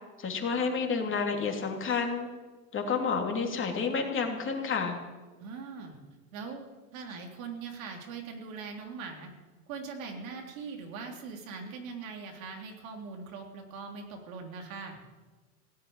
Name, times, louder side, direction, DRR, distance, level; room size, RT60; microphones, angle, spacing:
voice 1, 0.2-2.3 2.7-5.0, left 5 dB, 30° left, 3 dB, 2.9 m, -30 dB
voice 2, 5.4-6.0 6.3-6.6 6.9-9.3 9.7-15.0, right 5 dB, 85° right, 2 dB, 3.6 m, -41 dB
17.0 x 8.0 x 9.8 m, 1.2 s
supercardioid pair, 120°, 40 cm